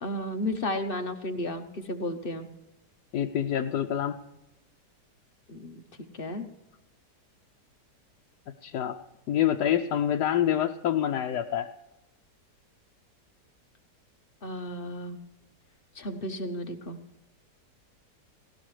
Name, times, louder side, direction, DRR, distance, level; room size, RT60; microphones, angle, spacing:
voice 1, 0.0-2.5 5.5-5.8 6.1-6.4 14.4-15.2 15.9-17.0, left 1 dB, 40° left, 8 dB, 0.9 m, -33 dB
voice 2, 3.1-4.2 8.6-9.0 9.3-11.7, left 10 dB, 75° left, 3 dB, 1.2 m, -26 dB
18.5 x 17.0 x 3.2 m, 0.98 s
omnidirectional pair, 1.8 m